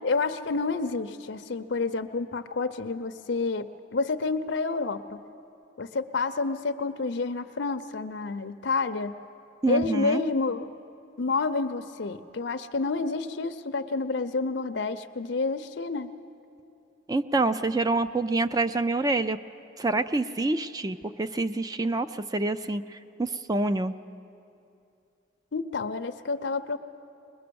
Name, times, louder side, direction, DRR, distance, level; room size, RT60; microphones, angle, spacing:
voice 1, 0.0-5.2 5.8-9.2 9.7-10.7 11.2-16.1 25.5-26.8, left 3 dB, 65° left, 9 dB, 0.6 m, -29 dB
voice 2, 9.6-10.2 17.1-19.4 19.8-24.0, right 2 dB, 20° right, 11 dB, 0.4 m, -27 dB
22.0 x 20.0 x 6.9 m, 2.6 s
head